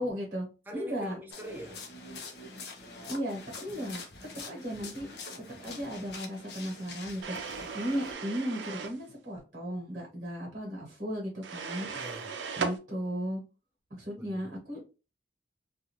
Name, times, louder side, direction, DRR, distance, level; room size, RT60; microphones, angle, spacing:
voice 1, 0.0-0.5 0.7-1.2 3.1-4.0 4.5-5.1 5.6-11.9 12.6-13.4 13.9-14.8, equal, 45° right, 1.0 m, -35 dB
voice 2, 0.7-1.9 11.9-12.5 14.2-14.6, right 1 dB, 10° right, 0.5 m, -44 dB
sound 1, 1.3-8.1, left 3 dB, 65° left, 0.7 m, -45 dB
sound 2, 7.2-9.0 11.4-12.8, right 5 dB, 85° right, 0.5 m, -37 dB
2.5 x 2.4 x 2.8 m
head